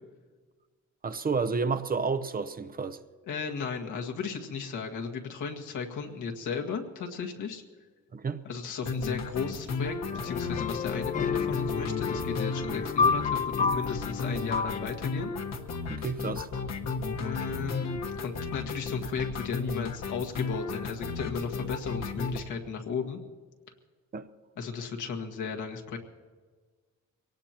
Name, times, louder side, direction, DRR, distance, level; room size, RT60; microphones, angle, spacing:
voice 1, 1.0-3.0 8.1-8.4 15.9-16.5 24.1-24.3, right 4 dB, 30° right, 0.7 m, -30 dB
voice 2, 3.3-7.6 8.5-10.0 10.2-15.3 17.1-17.9 18.2-23.2 24.6-26.0, left 5 dB, 80° left, 1.9 m, -35 dB
sound 1, 8.8-22.4, left 4 dB, 60° left, 1.4 m, -34 dB
sound 2, 10.1-15.1, left 5 dB, 25° left, 0.4 m, -30 dB
23.0 x 18.5 x 3.0 m
cardioid pair, 90°, 30 cm